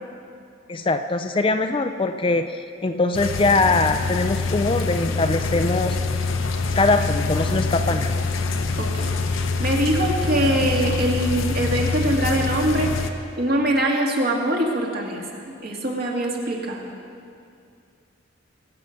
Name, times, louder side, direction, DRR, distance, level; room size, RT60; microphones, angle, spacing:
voice 1, 0.7-2.5 2.8-6.0 6.8-8.2, left 3 dB, 25° left, 7 dB, 0.4 m, -22 dB
sound 1, 3.1-13.1, left 3 dB, 85° left, 0.9 m, -25 dB
voice 2, 8.8-12.9 13.4-16.9, right 1 dB, 50° right, -1 dB, 2.0 m, -23 dB
21.0 x 7.8 x 5.8 m, 2.4 s
head